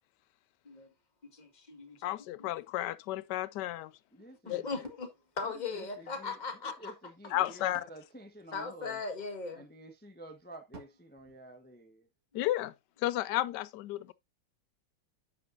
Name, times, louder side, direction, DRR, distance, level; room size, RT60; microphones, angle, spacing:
voice 1, 1.2-2.0 2.4-2.5 4.5-5.1 5.4-6.7 8.5-9.6, left 4 dB, 25° left, 1.6 m, -38 dB
voice 2, 2.0-3.9 4.5-4.6 7.3-7.8 12.3-12.7 13.0-14.1, left 15 dB, 70° left, 1.1 m, -32 dB
voice 3, 4.1-4.7 5.4-9.0 9.5-12.1, right 1 dB, 10° left, 0.7 m, -51 dB
sound 1, 4.8-6.4 7.2-9.2 10.7-12.3, right 3 dB, 40° right, 1.7 m, -58 dB
8.7 x 8.4 x 2.5 m
omnidirectional pair, 2.1 m